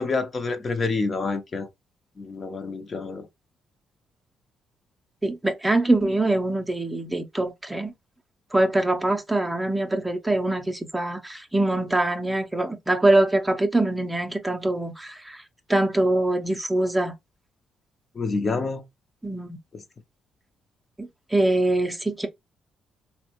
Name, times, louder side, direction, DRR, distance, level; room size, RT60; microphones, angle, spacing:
voice 1, 0.0-1.7 2.2-3.3 18.2-18.8, left 3 dB, 40° left, 0.5 m, -27 dB
voice 2, 5.2-7.9 8.5-15.4 15.7-17.1 19.2-19.6 21.0-22.3, right 2 dB, 10° right, 0.5 m, -23 dB
3.3 x 2.1 x 2.8 m
cardioid pair, 90°, 0 cm